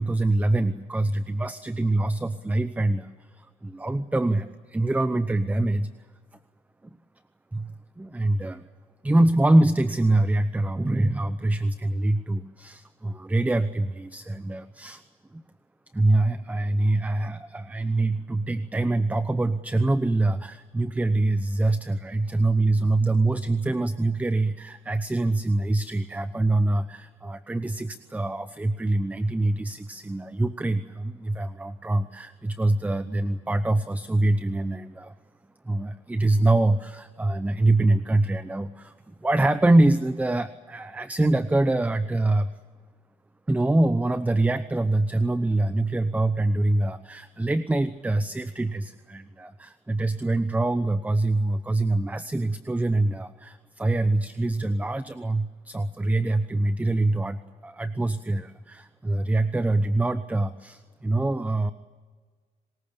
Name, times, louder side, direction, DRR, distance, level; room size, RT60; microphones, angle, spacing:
voice 1, 0.0-3.1 3.4-5.9 7.5-8.7 9.0-15.0 15.3-15.4 15.9-35.1 35.6-42.5 43.5-61.7, right 2 dB, 10° right, 13 dB, 0.8 m, -24 dB
25.0 x 20.0 x 8.7 m, 1.5 s
cardioid pair, 110°, 17 cm